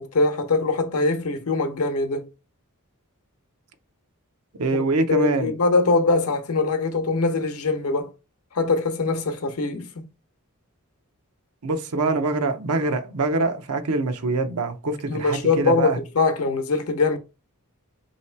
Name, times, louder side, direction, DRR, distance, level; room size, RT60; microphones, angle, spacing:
voice 1, 0.0-2.3 4.7-4.8 5.1-8.1 8.5-10.1 15.1-17.2, left 3 dB, 75° left, 0.8 m, -22 dB
voice 2, 4.6-5.5 11.6-16.0, right 3 dB, 85° right, 0.7 m, -24 dB
3.2 x 2.9 x 4.3 m
head